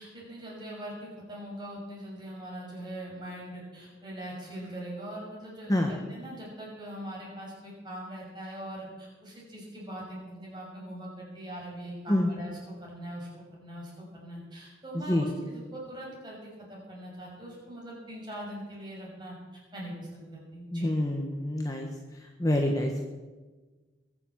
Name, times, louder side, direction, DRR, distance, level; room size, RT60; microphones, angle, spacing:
voice 1, 0.0-20.9, right 1 dB, 25° right, -4 dB, 6.2 m, -42 dB
voice 2, 20.7-21.9 22.4-23.0, left 1 dB, 20° left, 2 dB, 1.2 m, -26 dB
22.0 x 7.4 x 7.3 m, 1.3 s
head